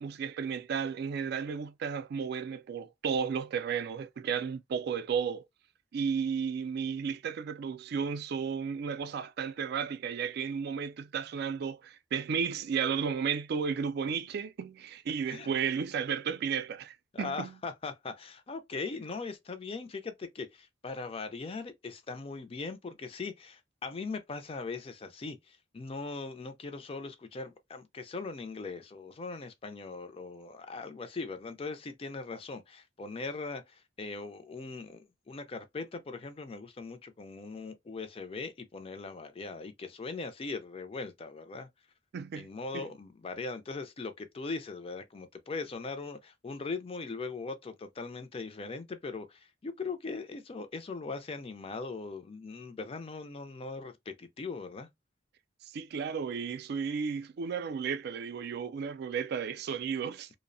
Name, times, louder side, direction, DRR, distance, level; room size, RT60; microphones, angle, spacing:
voice 1, 0.0-5.4 5.9-17.5 42.1-42.5 42.7-42.8 55.7-60.4, right 6 dB, 60° right, 0.3 m, -33 dB
voice 2, 17.1-41.7 42.3-54.9, left 4 dB, 30° left, 0.4 m, -40 dB
2.6 x 2.0 x 2.5 m
head